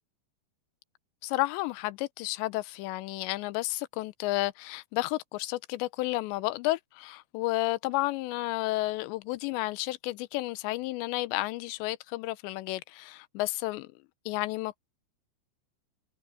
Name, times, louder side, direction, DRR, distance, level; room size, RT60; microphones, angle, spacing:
voice 1, 1.2-13.9 14.3-14.8, left 19 dB, 90° left, 2.9 m, -32 dB
omnidirectional pair, 5.1 m